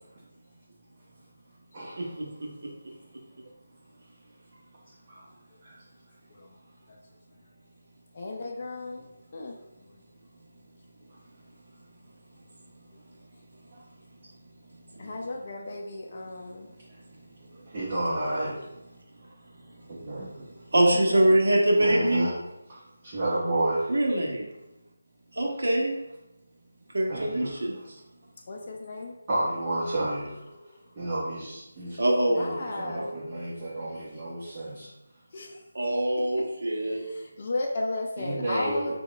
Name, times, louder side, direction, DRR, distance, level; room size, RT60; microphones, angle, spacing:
voice 1, 1.7-2.1 5.1-5.3 5.6-5.7 13.7-13.8 17.7-18.6 19.9-20.5 21.8-22.4 22.7-22.8 23.0-23.9 27.1-27.6 29.3-30.4 31.0-32.0 32.3-34.9 38.2-38.9, right 1 dB, 30° right, -9 dB, 0.8 m, -31 dB
voice 2, 8.1-9.0 9.3-9.5 15.0-16.7 20.7-21.4 28.5-29.1 30.5-30.7 32.3-33.1 35.3-35.6 36.7-38.9, left 2 dB, 40° left, -1 dB, 0.4 m, -35 dB
voice 3, 20.7-22.3 23.9-24.4 25.4-25.9 26.9-27.8 32.0-32.4 35.8-37.0, right 1 dB, 80° right, 0 dB, 0.8 m, -23 dB
5.0 x 2.2 x 2.2 m, 0.92 s
figure-of-eight pair, 170°, 0 cm